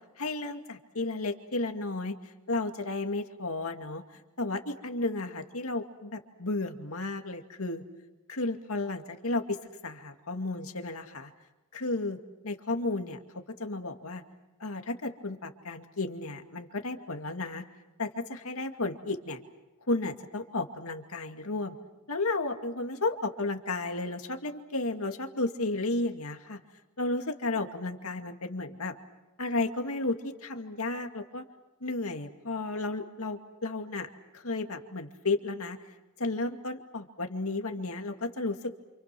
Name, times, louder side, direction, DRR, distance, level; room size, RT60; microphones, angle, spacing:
voice 1, 0.2-2.1 2.5-4.0 4.4-7.8 8.3-11.3 11.7-12.2 12.4-14.2 14.6-17.7 18.0-19.4 19.9-21.8 22.1-26.6 27.0-28.9 29.4-31.4 31.8-35.8 36.2-38.7, left 2 dB, 70° left, 5 dB, 2.3 m, -33 dB
29.0 x 28.0 x 6.2 m, 1.1 s
head